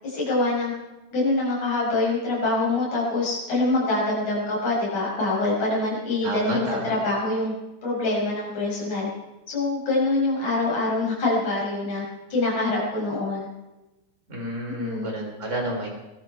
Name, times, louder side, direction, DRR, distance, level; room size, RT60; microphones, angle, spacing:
voice 1, 0.0-0.7 1.1-7.5 7.8-9.1 9.5-12.0 12.3-13.5 14.8-15.1, left 2 dB, 40° left, -4 dB, 7.3 m, -25 dB
voice 2, 6.2-6.9 14.3-15.9, right 1 dB, 15° right, 0 dB, 3.3 m, -30 dB
21.5 x 13.0 x 4.6 m, 1.0 s
omnidirectional pair, 5.2 m